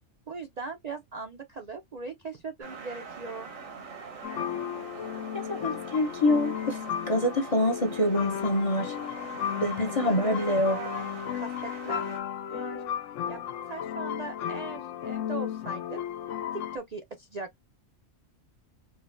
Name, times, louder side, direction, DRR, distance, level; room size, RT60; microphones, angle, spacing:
voice 1, 0.3-3.5 9.9-12.0 12.5-12.8 13.3-13.4 13.7-16.0 16.5-17.6, right 4 dB, 50° right, 0.5 m, -39 dB
sound 1, 2.6-12.2, right 5 dB, 85° right, 1.6 m, -43 dB
sound 2, 4.2-16.8, left 9 dB, 75° left, 0.9 m, -34 dB
voice 2, 5.3-6.8 7.1-9.0 9.6-10.8, left 1 dB, 35° left, 0.6 m, -26 dB
4.8 x 2.1 x 2.5 m
omnidirectional pair, 1.3 m